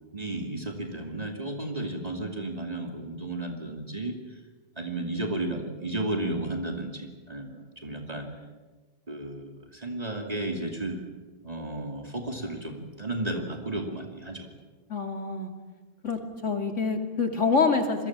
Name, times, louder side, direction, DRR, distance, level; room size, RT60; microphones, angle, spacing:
voice 1, 0.1-4.4 4.8-8.3 9.1-11.0 11.4-14.5, right 2 dB, 35° right, 2 dB, 2.8 m, -33 dB
voice 2, 14.9-15.5 16.0-18.1, left 4 dB, 85° left, 5 dB, 3.1 m, -26 dB
27.5 x 22.5 x 7.4 m, 1.3 s
omnidirectional pair, 1.2 m